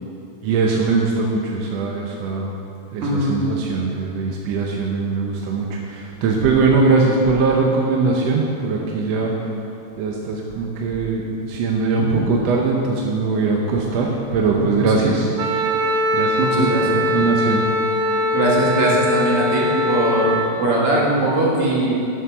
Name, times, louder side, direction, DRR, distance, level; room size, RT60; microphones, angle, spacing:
voice 1, 0.4-2.5 2.9-9.3 10.0-15.3 16.1-17.6 18.9-19.0, right 4 dB, 70° right, 0 dB, 1.8 m, -21 dB
voice 2, 3.0-3.3 12.0-12.2 14.6-14.8 16.4-17.0 18.3-22.0, right 1 dB, 55° right, -4 dB, 2.5 m, -20 dB
Wind instrument woodwind instrument, 15.4-20.5, left 1 dB, 85° right, 1.2 m, -21 dB
8.6 x 7.4 x 5.9 m, 2.6 s
omnidirectional pair, 3.3 m